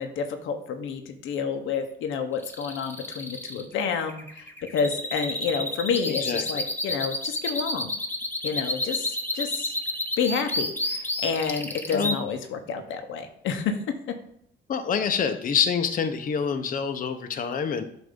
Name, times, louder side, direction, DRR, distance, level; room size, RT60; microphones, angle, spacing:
voice 1, 0.0-7.9 8.4-9.7 10.2-13.8, left 6 dB, 80° left, 6 dB, 0.8 m, -29 dB
sound 1, 2.4-12.2, left 1 dB, 10° left, 0.8 m, -30 dB
voice 2, 6.1-6.4 11.9-12.2 14.7-17.8, left 6 dB, 45° left, 7 dB, 0.6 m, -26 dB
7.8 x 2.6 x 5.1 m, 0.70 s
cardioid pair, 90°, 20 cm